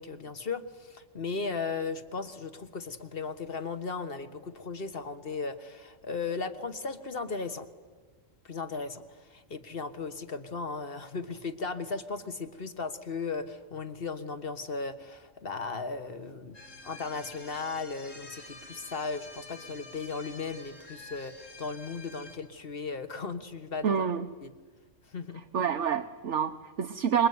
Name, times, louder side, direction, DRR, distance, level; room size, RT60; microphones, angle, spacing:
voice 1, 0.0-7.7 8.4-24.1 24.4-24.5 25.1-25.4, left 4 dB, 45° left, 10 dB, 1.7 m, -36 dB
sound 1, 16.5-22.4, left 2 dB, 70° left, 4.3 m, -48 dB
voice 2, 23.8-24.3 25.5-27.3, right 7 dB, 65° right, 7 dB, 1.3 m, -27 dB
26.0 x 23.5 x 9.6 m, 1.4 s
omnidirectional pair, 1.3 m